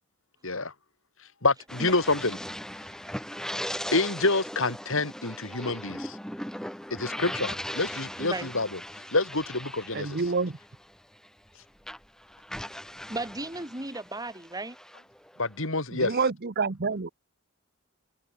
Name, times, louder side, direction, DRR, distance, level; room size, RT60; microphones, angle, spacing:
voice 1, 1.4-2.4 3.9-6.2 6.9-8.8 9.1-10.2 15.4-16.1, left 3 dB, 65° left, 4.7 m, -27 dB
sound 1, 1.7-11.5 11.8-15.7, equal, 5° left, 5.7 m, -39 dB
voice 2, 8.2-8.5 13.1-14.8, right 2 dB, 20° right, 3.2 m, -35 dB
voice 3, 9.9-10.6 15.9-17.1, right 4 dB, 50° right, 0.9 m, -28 dB
head